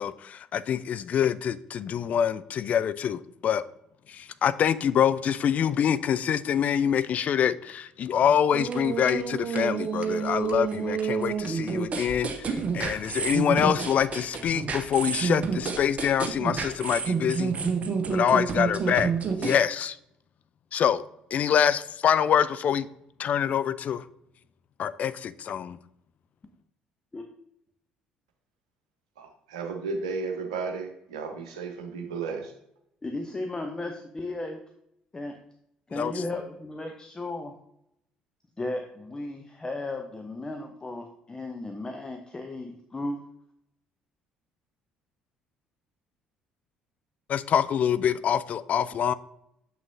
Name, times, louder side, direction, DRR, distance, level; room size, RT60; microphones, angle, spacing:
voice 1, 0.0-3.6 4.1-17.5 18.1-19.1 19.4-20.0 20.7-21.0 21.3-22.9 23.2-24.0 24.8-25.8 35.9-36.1 47.3-49.1, left 8 dB, 40° left, 16 dB, 0.3 m, -25 dB
sound 1, 8.5-19.6, right 6 dB, 35° right, 0.9 m, -29 dB
voice 2, 29.2-32.5, right 4 dB, 70° right, 4 dB, 1.0 m, -34 dB
voice 3, 33.0-34.6 35.1-35.4 35.9-37.5 38.6-43.2, left 2 dB, 20° left, 4 dB, 0.7 m, -35 dB
7.0 x 6.1 x 2.6 m, 0.75 s
figure-of-eight pair, 50°, 4 cm